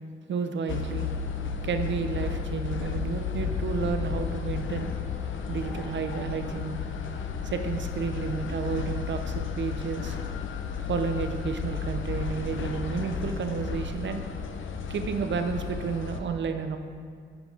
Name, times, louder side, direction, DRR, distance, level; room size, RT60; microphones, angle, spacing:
voice 1, 0.3-1.1 1.6-4.9 5.5-6.8 7.4-10.2 10.9-14.2 14.9-16.8, right 5 dB, 70° right, 7 dB, 0.6 m, -31 dB
sound 1, 0.7-16.2, left 6 dB, 80° left, 0.5 m, -33 dB
8.9 x 4.6 x 3.8 m, 2.2 s
supercardioid pair, 45°, 20 cm